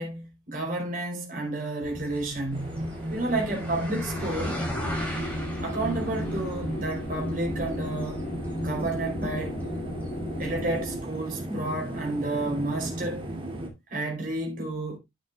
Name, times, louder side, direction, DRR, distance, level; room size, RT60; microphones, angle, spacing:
voice 1, 0.0-4.6 5.6-8.2 8.6-9.6 10.4-13.3 13.9-15.0, right 2 dB, 45° right, 3.9 m, -31 dB
sound 1, 1.8-10.8, equal, 5° left, 3.1 m, -39 dB
sound 2, 2.5-13.7, right 1 dB, 30° right, 2.5 m, -35 dB
sound 3, 4.1-11.0, left 1 dB, 50° left, 1.1 m, -36 dB
10.0 x 9.3 x 2.4 m
head